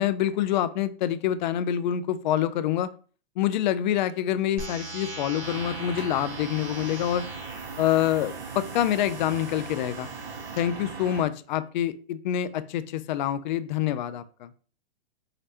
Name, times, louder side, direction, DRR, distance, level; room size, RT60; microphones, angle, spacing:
voice 1, 0.0-2.9 3.4-7.2 7.8-10.1 10.6-14.5, left 11 dB, 45° left, 14 dB, 0.4 m, -26 dB
sound 1, 4.6-10.6, right 2 dB, 40° right, 2.0 m, -41 dB
sound 2, 5.4-11.2, right 5 dB, 70° right, 1.2 m, -39 dB
4.9 x 3.2 x 2.8 m, 0.39 s
hypercardioid pair, 125°, 33 cm